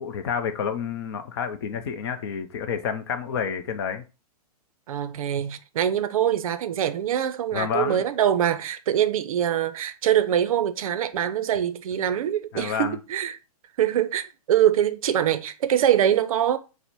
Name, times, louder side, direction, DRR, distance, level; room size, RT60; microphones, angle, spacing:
voice 1, 0.0-4.1 7.5-8.0 12.5-13.0, left 7 dB, 40° left, 0.5 m, -29 dB
voice 2, 4.9-13.4 13.8-16.6, right 10 dB, 60° right, 0.5 m, -24 dB
4.0 x 2.0 x 4.4 m
hypercardioid pair, 165°, 20 cm